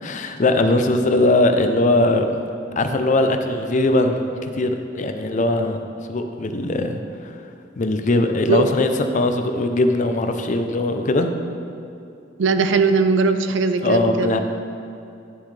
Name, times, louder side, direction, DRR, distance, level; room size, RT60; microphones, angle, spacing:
voice 1, 0.0-2.3 2.8-5.8 6.1-7.4 7.8-11.3 13.8-14.4, left 2 dB, 40° left, 6 dB, 0.5 m, -20 dB
voice 2, 12.4-14.3, right 4 dB, 70° right, 9 dB, 0.5 m, -19 dB
11.0 x 6.9 x 3.3 m, 2.6 s
head